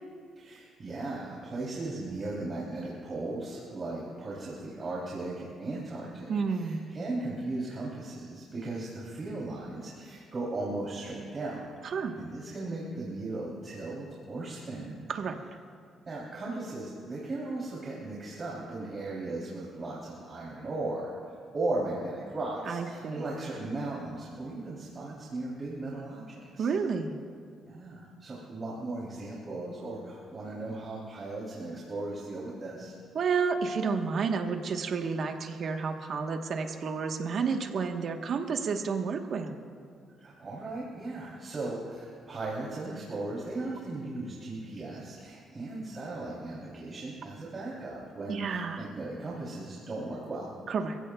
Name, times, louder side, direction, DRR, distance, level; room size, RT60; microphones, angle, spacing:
voice 1, 0.4-15.0 16.0-26.7 27.7-33.0 40.2-50.5, right 2 dB, 35° right, -5 dB, 3.2 m, -37 dB
voice 2, 6.3-6.8 11.8-12.1 15.1-15.4 22.7-23.4 26.6-27.2 33.1-39.6 48.3-48.8 50.7-51.0, right 5 dB, 55° right, 4 dB, 1.2 m, -31 dB
30.0 x 16.0 x 2.3 m, 2.2 s
cardioid pair, 110°, 0 cm